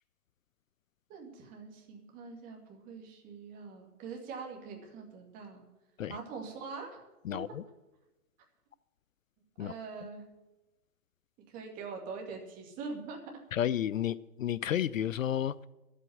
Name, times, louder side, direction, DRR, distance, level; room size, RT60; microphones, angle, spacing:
voice 1, 1.1-5.6 6.1-7.0 9.6-10.3 11.5-13.3, right 4 dB, 20° right, 2.1 m, -43 dB
voice 2, 13.6-15.7, left 10 dB, 60° left, 0.5 m, -31 dB
11.0 x 8.2 x 9.2 m
hypercardioid pair, 160°, 45 cm